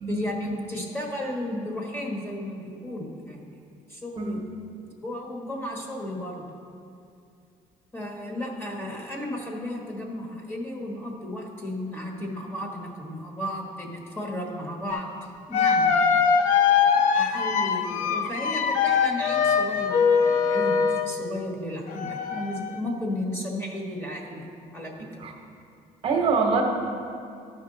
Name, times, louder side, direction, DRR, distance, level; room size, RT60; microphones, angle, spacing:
voice 1, 0.1-3.5 3.9-4.4 5.0-6.4 7.9-16.0 17.1-24.5 24.7-25.2, left 1 dB, 15° left, 0 dB, 1.3 m, -34 dB
sound 1, 14.9-15.0 15.5-21.1 21.9-22.8, left 6 dB, 70° left, 0.6 m, -22 dB
voice 2, 26.0-26.6, right 4 dB, 45° right, 2 dB, 1.0 m, -24 dB
13.0 x 5.2 x 3.8 m, 2.5 s
cardioid pair, 130°, 14 cm